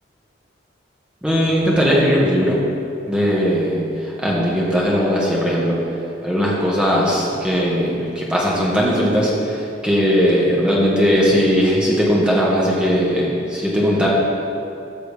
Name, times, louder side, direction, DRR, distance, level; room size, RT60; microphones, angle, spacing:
voice 1, 1.2-2.6 3.1-3.8 4.2-5.8 6.2-14.1, equal, 5° right, -6 dB, 1.4 m, -18 dB
13.0 x 6.4 x 3.5 m, 2.7 s
head